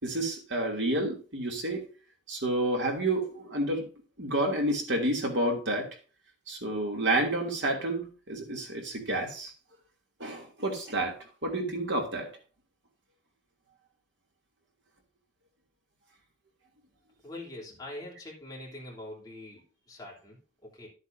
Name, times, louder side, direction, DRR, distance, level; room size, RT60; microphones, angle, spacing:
voice 1, 0.0-1.8 2.3-3.9 4.2-5.9 6.5-9.5 10.2-12.3, right 1 dB, 65° right, 1 dB, 2.8 m, -30 dB
voice 2, 17.2-20.9, left 1 dB, 20° left, -4 dB, 3.1 m, -44 dB
13.0 x 8.2 x 2.7 m, 0.36 s
head